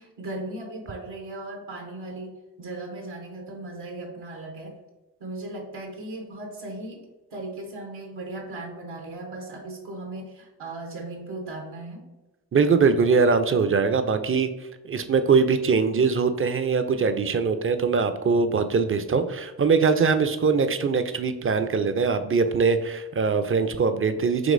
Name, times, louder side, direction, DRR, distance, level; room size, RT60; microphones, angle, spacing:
voice 1, 0.0-2.3 2.6-4.7 5.2-7.1 7.3-12.0, right 2 dB, 80° right, 1 dB, 1.0 m, -37 dB
voice 2, 12.5-14.5 14.8-24.5, right 5 dB, 35° right, 10 dB, 0.4 m, -22 dB
5.2 x 2.9 x 2.5 m, 1.1 s
supercardioid pair, 40°, 39 cm